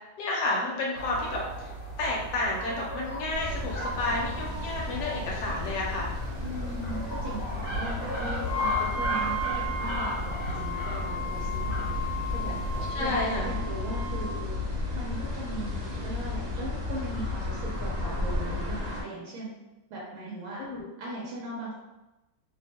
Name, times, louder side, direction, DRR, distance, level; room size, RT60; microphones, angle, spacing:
voice 1, 0.2-1.7 2.0-6.1 12.9-13.5 20.6-20.9, left 2 dB, 65° left, -2 dB, 1.1 m, -31 dB
sound 1, 0.9-12.9, right 1 dB, 40° left, 1.1 m, -36 dB
sound 2, 3.3-19.0, left 3 dB, 55° right, 1.1 m, -34 dB
voice 2, 6.4-11.9 12.3-12.5 13.0-14.6 14.9-19.5 19.9-20.6 21.0-21.7, right 2 dB, 90° right, -5 dB, 1.5 m, -38 dB
Wind instrument woodwind instrument, 8.4-14.3, left 1 dB, 85° left, 0.8 m, -34 dB
3.4 x 2.2 x 2.7 m, 1.0 s
omnidirectional pair, 2.2 m